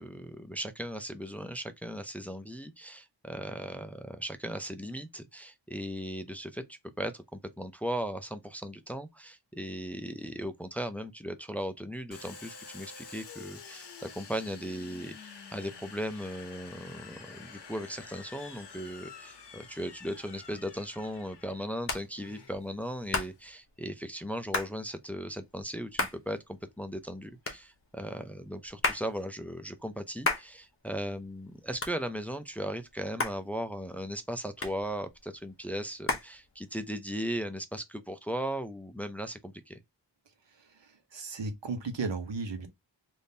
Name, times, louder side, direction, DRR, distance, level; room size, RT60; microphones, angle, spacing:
voice 1, 0.0-39.8, equal, 5° left, 0.4 m, -37 dB
Domestic sounds home sounds, 12.1-23.5, left 5 dB, 65° left, 0.8 m, -49 dB
Hands, 20.4-37.0, left 2 dB, 30° left, 0.8 m, -37 dB
voice 2, 40.5-42.7, right 4 dB, 75° right, 1.0 m, -36 dB
3.5 x 2.6 x 2.7 m
wide cardioid pair, 95°, 45 cm